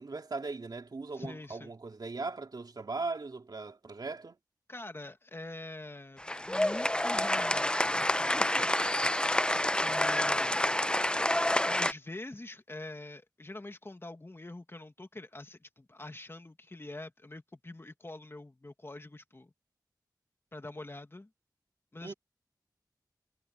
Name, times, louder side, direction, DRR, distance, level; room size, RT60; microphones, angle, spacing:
voice 1, 0.0-4.4 22.0-22.1, right 3 dB, 65° right, 3.0 m, -39 dB
voice 2, 1.1-1.7 4.7-6.2 6.5-7.9 8.2-8.6 9.8-10.7 11.7-19.5 20.5-21.3 21.9-22.1, left 2 dB, 35° left, 2.3 m, -45 dB
sound 1, 6.2-11.9, left 1 dB, 15° left, 0.8 m, -28 dB
wide cardioid pair, 55°, 7 cm